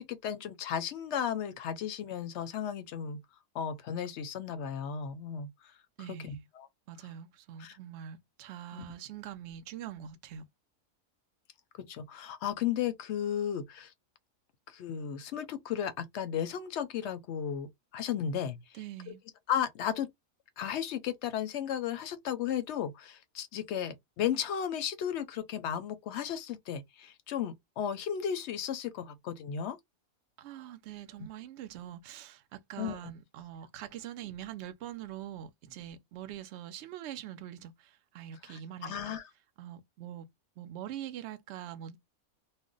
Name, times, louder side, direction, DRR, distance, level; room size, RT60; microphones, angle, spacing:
voice 1, 0.0-3.2 3.5-5.5 6.1-6.7 7.6-7.8 8.7-8.8 11.8-13.9 14.7-18.6 19.5-20.1 20.6-29.8 32.8-33.0 38.4-39.2, left 9 dB, 65° left, 0.7 m, -34 dB
voice 2, 6.0-6.4 6.9-10.4 18.7-19.2 30.4-39.2 39.6-40.3 40.6-42.0, right 11 dB, 65° right, 0.7 m, -44 dB
2.4 x 2.1 x 3.7 m
omnidirectional pair, 1.5 m